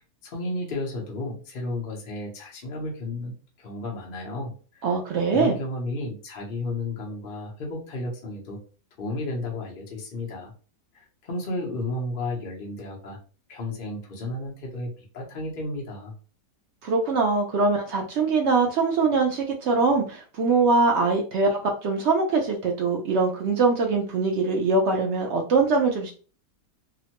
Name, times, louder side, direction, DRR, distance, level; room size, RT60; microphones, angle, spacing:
voice 1, 0.2-4.8 5.3-8.6 9.0-10.5 11.2-13.2 13.5-16.1, left 2 dB, 45° left, -2 dB, 0.7 m, -33 dB
voice 2, 4.8-5.6 16.8-26.1, right 4 dB, 85° right, 1 dB, 0.6 m, -22 dB
2.9 x 2.1 x 2.8 m, 0.38 s
omnidirectional pair, 1.8 m